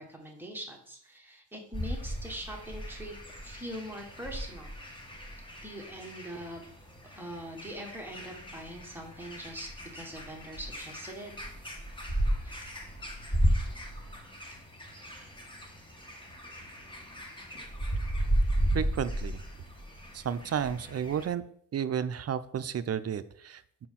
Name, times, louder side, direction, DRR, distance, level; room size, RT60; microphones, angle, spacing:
voice 1, 0.0-3.1 3.4-4.7 5.6-6.6 7.1-11.3 12.4-12.5 13.4-13.5, equal, 5° right, 0 dB, 1.4 m, -42 dB
sound 1, 1.7-21.3, equal, 15° left, 1.2 m, -34 dB
voice 2, 18.7-19.4 20.1-21.4 21.7-23.9, right 8 dB, 45° right, 12 dB, 0.5 m, -32 dB
6.2 x 4.4 x 5.7 m, 0.63 s
wide cardioid pair, 140°, 35 cm